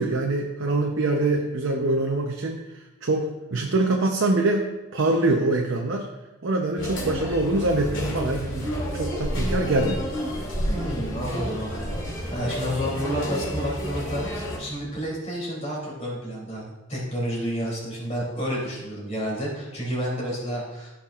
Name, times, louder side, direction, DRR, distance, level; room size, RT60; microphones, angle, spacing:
voice 1, 0.0-6.1 6.4-10.0, right 2 dB, 60° right, 1 dB, 0.7 m, -24 dB
sound 1, 6.8-14.6, equal, 60° left, 2.6 m, -30 dB
voice 2, 10.7-12.0 12.3-20.9, equal, 30° left, -4 dB, 3.1 m, -30 dB
14.5 x 6.0 x 2.4 m, 1.1 s
head